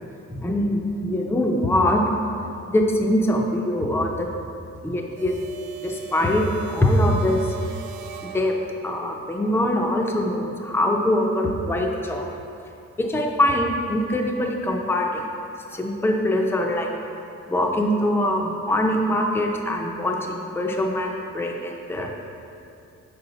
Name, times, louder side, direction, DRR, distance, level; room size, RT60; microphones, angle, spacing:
voice 1, 0.3-2.0 2.7-4.3 4.8-5.4 5.8-7.5 8.2-8.5 8.8-12.4 13.0-15.3 15.7-22.2, left 1 dB, 10° left, 1 dB, 0.5 m, -23 dB
sound 1, 5.2-9.1, right 11 dB, 80° right, 0.5 m, -41 dB
7.0 x 4.8 x 4.0 m, 2.6 s
wide cardioid pair, 130°, 30 cm